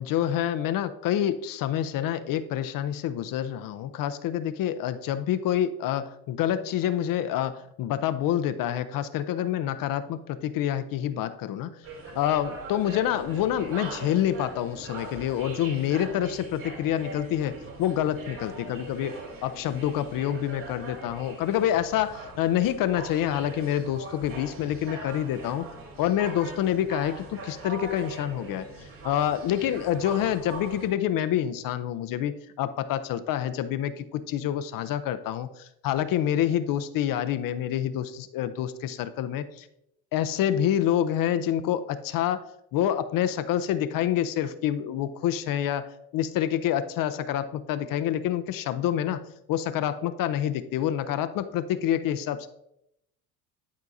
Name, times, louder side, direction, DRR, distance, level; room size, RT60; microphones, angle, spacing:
voice 1, 0.0-11.7 12.1-25.7 26.0-28.7 29.0-39.7 40.1-42.4 42.7-49.2 49.5-52.5, left 11 dB, 45° left, 11 dB, 0.6 m, -27 dB
sound 1, 11.8-30.9, right 2 dB, 45° right, 2.7 m, -41 dB
11.0 x 4.5 x 2.6 m, 0.78 s
hypercardioid pair, 70°, 46 cm